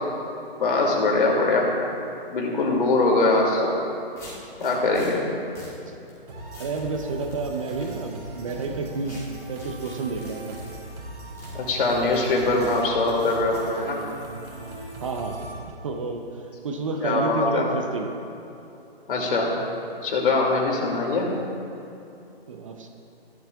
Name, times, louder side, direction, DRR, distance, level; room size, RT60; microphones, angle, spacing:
voice 1, 0.6-1.7 2.3-3.8 4.6-5.2 11.5-14.0 17.0-17.7 19.1-19.6 20.0-21.3, left 2 dB, 55° left, -1 dB, 2.6 m, -22 dB
sound 1, 3.4-3.5 4.2-5.1 5.5-5.8 6.1-6.2 6.5-6.8 7.3-7.9 9.0-9.2 9.6-10.7 11.4-11.6 12.1-12.2 12.6-12.8 13.2-13.7, left 1 dB, 10° left, 2.5 m, -45 dB
voice 2, 5.7-6.0 6.6-10.6 12.6-12.8 15.0-15.5 15.8-18.1 22.5-22.9, right 3 dB, 30° right, 4 dB, 0.7 m, -30 dB
sound 2, 6.3-15.5, right 2 dB, 55° right, 2.7 m, -39 dB
16.5 x 11.5 x 2.4 m, 2.8 s
hypercardioid pair, 150°, 31 cm